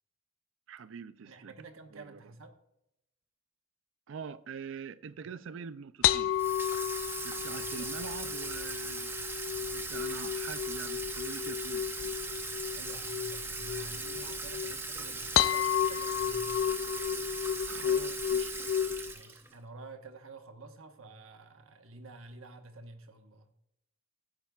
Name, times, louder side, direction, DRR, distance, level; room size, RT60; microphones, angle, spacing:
voice 1, 0.7-1.5 1.9-2.2 4.1-6.4 7.2-9.2 9.6-12.2 17.7-18.5 18.9-19.1, right 6 dB, 65° right, 0.4 m, -44 dB
voice 2, 1.2-2.6 7.3-8.0 12.7-16.8 19.0-23.5, right 2 dB, 85° right, 1.2 m, -50 dB
sound 1, 6.0-19.1, left 10 dB, 75° left, 0.4 m, -33 dB
Water tap faucet / Sink (filling or washing), 6.4-19.5, right 3 dB, 10° right, 0.7 m, -39 dB
14.5 x 8.8 x 2.4 m
head